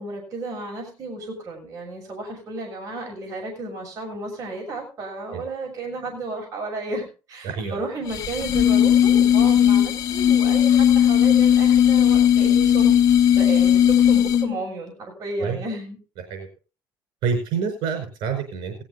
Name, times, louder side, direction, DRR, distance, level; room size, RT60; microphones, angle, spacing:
voice 1, 0.0-13.0 13.3-16.0, right 2 dB, 45° right, 0 dB, 6.7 m, -33 dB
voice 2, 7.4-7.8 15.4-15.6 16.3-16.5 17.2-18.7, right 6 dB, 70° right, 3 dB, 5.0 m, -27 dB
sound 1, 8.1-14.6, left 10 dB, 45° left, 1.8 m, -17 dB
18.5 x 14.0 x 2.6 m, 0.34 s
cardioid pair, 115°, 8 cm